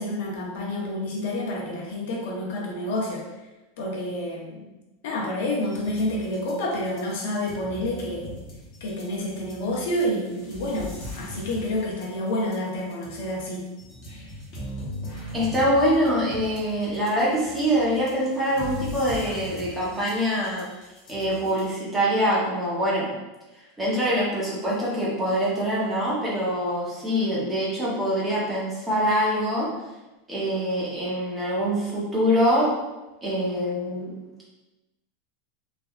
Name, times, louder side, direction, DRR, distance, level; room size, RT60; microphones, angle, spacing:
voice 1, 0.0-3.3 3.8-4.7 5.0-8.3 8.8-10.9 11.2-13.7, left 1 dB, 65° left, -2 dB, 0.7 m, -29 dB
sound 1, 5.6-21.7, left 1 dB, 30° left, 0.8 m, -40 dB
voice 2, 15.3-20.7 21.1-23.1 23.8-29.7 30.3-32.7 33.2-34.2, equal, 10° right, -7 dB, 0.7 m, -24 dB
3.3 x 2.3 x 2.3 m, 1.1 s
supercardioid pair, 175°, 0 cm